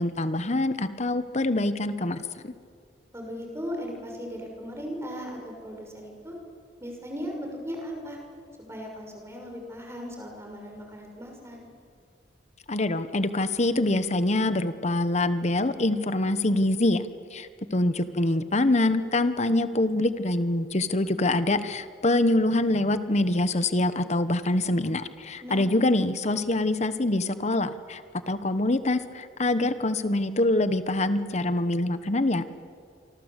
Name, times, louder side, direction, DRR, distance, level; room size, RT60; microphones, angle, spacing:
voice 1, 0.0-2.5 12.7-32.4, left 2 dB, 40° left, 12 dB, 1.1 m, -25 dB
voice 2, 3.1-6.3 6.8-8.2 8.6-11.7 25.4-25.7, equal, 15° right, 1 dB, 6.4 m, -37 dB
27.5 x 25.0 x 8.2 m, 2.2 s
head